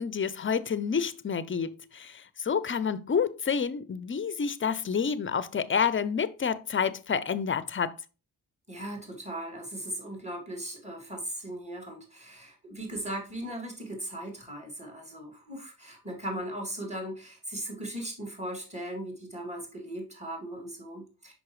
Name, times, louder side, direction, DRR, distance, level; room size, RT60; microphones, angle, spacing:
voice 1, 0.0-8.0, left 6 dB, 30° left, 0.6 m, -29 dB
voice 2, 8.7-21.3, right 1 dB, 15° right, 2.6 m, -38 dB
5.8 x 5.3 x 3.2 m
cardioid pair, 60°, 39 cm